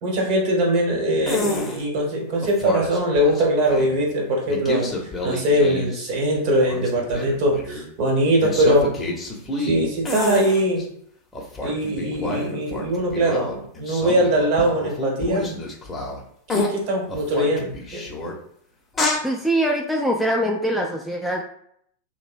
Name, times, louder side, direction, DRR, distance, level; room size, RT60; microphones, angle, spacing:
voice 1, 0.0-5.0 5.2-8.9 9.6-10.8 11.6-15.5 16.5-18.0, right 1 dB, 55° right, -1 dB, 1.0 m, -21 dB
sound 1, 1.2-1.8 2.4-4.0 4.5-6.1 6.4-7.9 8.4-10.8 11.3-16.2 16.5-16.7 17.1-18.3 18.9-19.2, left 2 dB, 15° left, 0.7 m, -29 dB
voice 2, 19.2-21.4, right 1 dB, ahead, 0 dB, 0.3 m, -23 dB
2.7 x 2.0 x 2.5 m, 0.68 s
hypercardioid pair, 100°, 0 cm